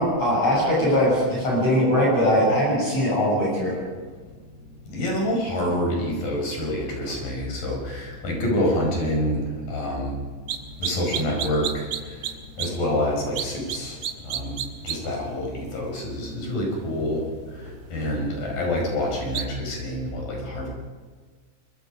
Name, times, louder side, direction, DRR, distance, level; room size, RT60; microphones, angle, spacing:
voice 1, 0.0-3.7, equal, 50° left, -4 dB, 8.3 m, -21 dB
voice 2, 4.9-10.2 10.8-12.2 12.6-14.6 14.8-17.3 17.6-20.7, left 1 dB, 85° left, 0 dB, 7.1 m, -27 dB
sound 1, 10.5-10.6 10.8-12.3 12.6-12.7 13.4-13.8 14.0-15.0 19.3-19.4, right 10 dB, 85° right, 3.1 m, -28 dB
25.0 x 24.0 x 5.3 m, 1.5 s
omnidirectional pair, 3.7 m